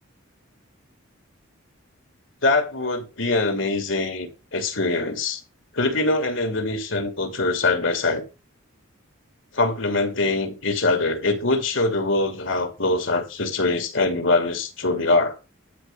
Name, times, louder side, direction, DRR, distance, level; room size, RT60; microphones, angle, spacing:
voice 1, 2.4-5.4 5.7-8.2 9.5-15.4, left 2 dB, 60° left, 2.7 m, -23 dB
11.5 x 4.7 x 7.1 m
head